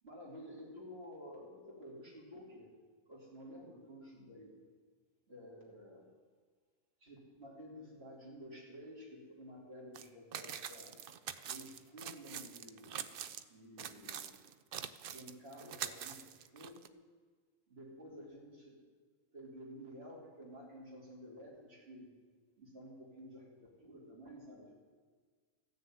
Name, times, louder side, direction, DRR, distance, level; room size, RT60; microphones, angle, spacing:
voice 1, 0.0-2.7 3.1-4.6 5.3-6.1 7.0-11.0 11.4-13.0 13.5-14.4 15.1-16.9 17.7-18.8 19.3-22.1 22.6-24.7, equal, 40° right, -3 dB, 3.2 m, -52 dB
sound 1, 9.9-10.1 10.3-13.4 13.8-16.9, right 9 dB, 90° right, 0.4 m, -45 dB
14.0 x 6.7 x 9.2 m, 1.5 s
omnidirectional pair, 1.5 m